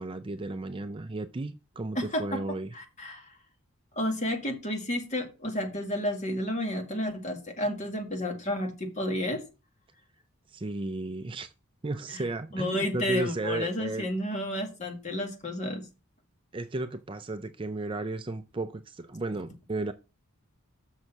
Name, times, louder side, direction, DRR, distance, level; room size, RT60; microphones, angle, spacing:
voice 1, 0.0-2.7 10.5-11.5 11.8-14.1 16.5-19.9, right 2 dB, 25° right, 0.4 m, -34 dB
voice 2, 2.0-3.3 4.0-9.4 12.1-12.2 12.5-15.8, left 1 dB, 30° left, 1.9 m, -31 dB
6.5 x 6.3 x 7.2 m
head